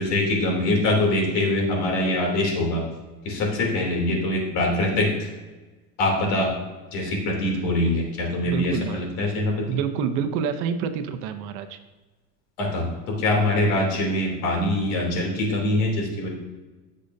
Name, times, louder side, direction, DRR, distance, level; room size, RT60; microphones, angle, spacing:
voice 1, 0.0-2.9 3.2-5.3 6.0-6.5 6.9-9.7 12.6-16.3, left 1 dB, 60° left, 0 dB, 3.2 m, -23 dB
voice 2, 8.5-9.0 9.7-11.8, right 7 dB, 55° right, 8 dB, 0.9 m, -27 dB
16.5 x 6.6 x 2.7 m, 1.2 s
cardioid pair, 170°, 36 cm